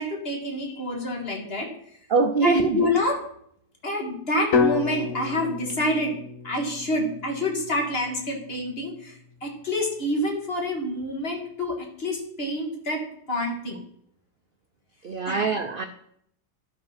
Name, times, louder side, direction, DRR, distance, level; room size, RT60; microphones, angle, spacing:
voice 1, 0.0-1.7 2.4-3.2 3.8-6.1 6.4-13.0 13.3-13.8 15.3-15.5, left 1 dB, 40° left, 1 dB, 1.9 m, -27 dB
voice 2, 2.1-2.8 15.0-15.9, right 4 dB, 65° right, 7 dB, 0.5 m, -23 dB
sound 1, 4.5-8.6, left 5 dB, 60° left, 1.2 m, -29 dB
12.0 x 5.2 x 5.7 m, 0.68 s
omnidirectional pair, 1.7 m